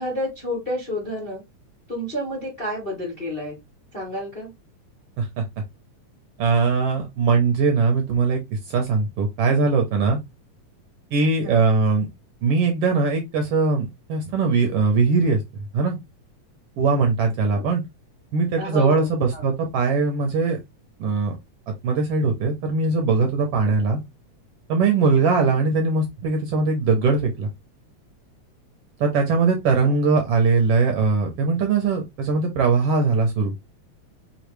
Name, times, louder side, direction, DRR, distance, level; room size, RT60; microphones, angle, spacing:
voice 1, 0.0-1.4 1.9-3.6 3.9-4.5 11.4-11.7 17.5-17.6 18.6-19.5 25.2-25.6 29.8-30.0, equal, 30° left, -2 dB, 1.1 m, -30 dB
voice 2, 6.4-8.4 8.7-10.2 11.1-12.1 12.4-15.4 15.7-16.0 16.8-17.8 18.3-20.6 21.0-21.3 21.8-24.0 24.7-27.5 29.0-33.5, right 4 dB, 70° right, 3 dB, 1.6 m, -20 dB
5.1 x 3.1 x 3.1 m, 0.20 s
omnidirectional pair, 3.3 m